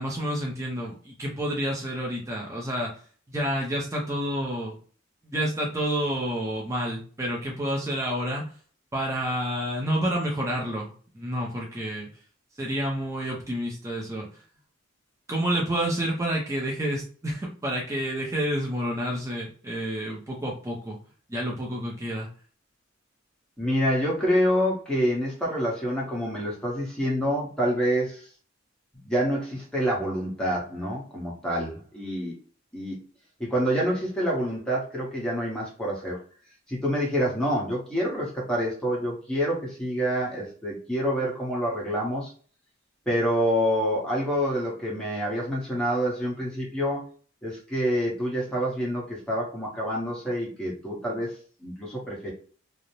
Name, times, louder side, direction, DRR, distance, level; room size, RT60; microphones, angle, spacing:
voice 1, 0.0-4.8 5.2-8.6 8.9-12.1 12.5-14.4 15.3-21.0 21.3-22.3, equal, 15° right, -2 dB, 0.5 m, -29 dB
voice 2, 23.6-28.3 29.0-32.3 32.7-33.0 33.4-36.2 36.7-42.3 43.1-47.1 47.4-52.3, equal, 5° left, -5 dB, 0.9 m, -27 dB
2.5 x 2.0 x 3.0 m, 0.41 s
head